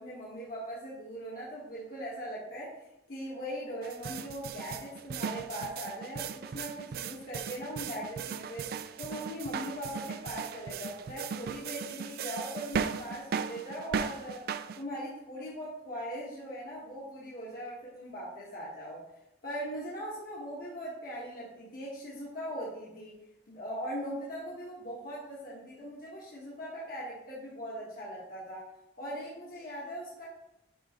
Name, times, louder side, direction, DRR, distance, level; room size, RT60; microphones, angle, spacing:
voice 1, 0.0-14.5 14.7-19.0 19.4-23.1 23.5-28.7 29.0-30.3, equal, 50° left, -6 dB, 1.4 m, -40 dB
sound 1, 3.8-14.8, right 6 dB, 55° right, 0.3 m, -37 dB
10.5 x 3.8 x 3.0 m, 0.88 s
head